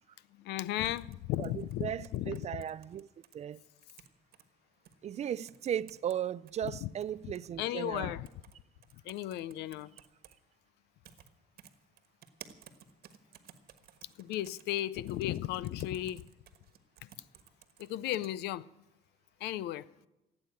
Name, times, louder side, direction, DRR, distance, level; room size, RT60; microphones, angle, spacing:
voice 1, 0.4-2.6 6.8-6.9 7.6-8.3 9.0-9.9 14.2-16.2 17.8-18.6 19.4-19.8, left 14 dB, 80° left, 0.5 m, -35 dB
sound 1, 0.8-3.4 3.8-4.4 4.9-5.0 5.5-6.2 6.5-7.5 8.3-8.6 8.8-10.4 11.0-11.3 11.6-18.3, right 9 dB, 65° right, 1.4 m, -55 dB
voice 2, 1.4-3.1 3.3-3.6 5.0-8.2, right 9 dB, 40° right, 0.4 m, -36 dB
16.5 x 8.7 x 9.0 m
cardioid pair, 110°, 17 cm